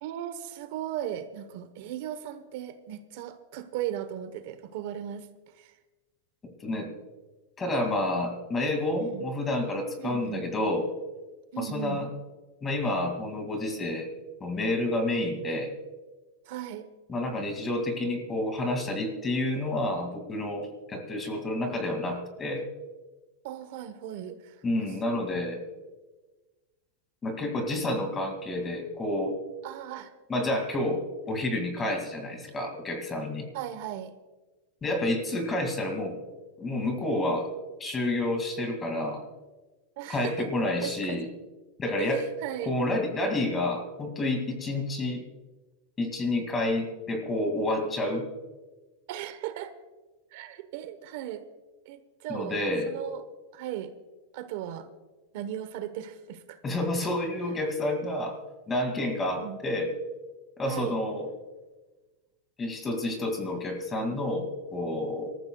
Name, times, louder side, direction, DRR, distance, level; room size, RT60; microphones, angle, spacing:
voice 1, 0.0-5.3 5.5-5.7 9.0-9.2 10.0-10.4 11.5-12.0 16.5-16.9 23.4-24.9 29.6-30.1 33.5-34.1 40.0-40.5 40.8-41.2 42.0-42.7 49.1-49.7 50.3-51.4 51.8-52.6 52.8-53.2 53.5-53.9 54.3-54.9 55.3-56.6 59.4-59.6 60.7-60.9, right 11 dB, 55° right, 10 dB, 1.0 m, -37 dB
voice 2, 7.6-10.9 11.6-12.1 12.6-14.1 14.4-15.7 17.1-22.7 24.6-25.6 27.2-29.3 30.3-33.5 34.8-36.1 36.6-37.5 37.8-39.2 40.1-41.3 41.8-42.2 42.7-45.2 46.0-48.2 52.3-52.9 56.6-58.4 58.7-59.9 60.6-61.3 62.6-65.3, left 1 dB, 15° left, 5 dB, 2.3 m, -29 dB
25.5 x 14.0 x 2.3 m, 1.2 s
supercardioid pair, 155°, 0 cm